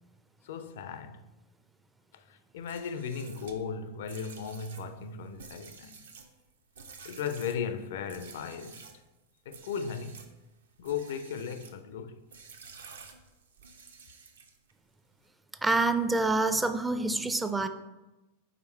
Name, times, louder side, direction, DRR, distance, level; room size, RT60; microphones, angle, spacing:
voice 1, 0.4-1.2 2.1-6.0 7.0-8.8 9.5-10.2 10.8-12.2, left 6 dB, 55° left, 0.4 m, -36 dB
sound 1, 2.6-9.0 9.5-10.3 10.8-11.8 12.3-14.7, right 5 dB, 65° right, 0.6 m, -51 dB
voice 2, 15.6-17.7, right 3 dB, 10° right, 0.4 m, -27 dB
5.0 x 4.7 x 4.4 m
figure-of-eight pair, 90°, 0 cm